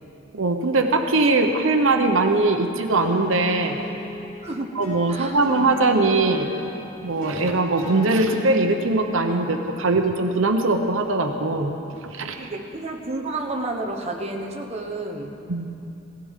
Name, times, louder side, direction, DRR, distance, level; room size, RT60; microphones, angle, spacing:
voice 1, 0.3-3.8 4.7-6.5 7.0-11.7 12.0-12.5 15.5-15.7, right 2 dB, 85° right, 5 dB, 0.9 m, -21 dB
sound 1, 3.0-12.6, left 2 dB, 50° left, 4.1 m, -39 dB
voice 2, 4.4-4.7 5.1-5.4 12.4-15.3, right 2 dB, 35° right, 1 dB, 1.1 m, -30 dB
18.0 x 15.5 x 3.7 m, 2.8 s
head